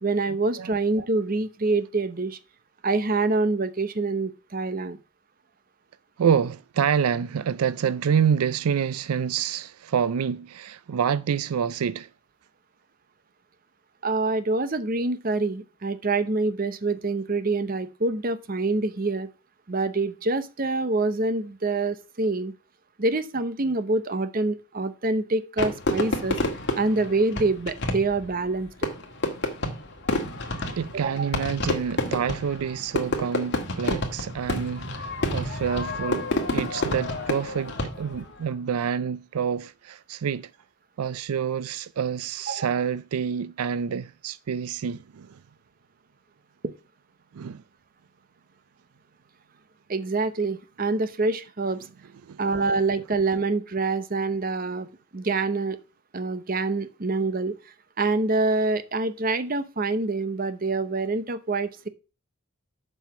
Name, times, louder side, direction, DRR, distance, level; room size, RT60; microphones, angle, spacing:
voice 1, 0.0-2.4 2.8-5.0 14.0-19.3 19.7-22.5 23.0-26.4 26.8-28.9 30.9-31.3 42.5-42.7 49.9-51.8 52.4-54.9 55.1-55.8 56.1-57.5 58.0-61.9, right 3 dB, 40° right, 0.8 m, -26 dB
voice 2, 6.2-12.1 30.7-40.5 41.0-45.4 47.3-47.6 52.2-52.4, right 7 dB, 90° right, 0.4 m, -27 dB
Fireworks, 25.6-38.3, left 1 dB, 50° left, 1.8 m, -29 dB
7.3 x 5.7 x 7.0 m
head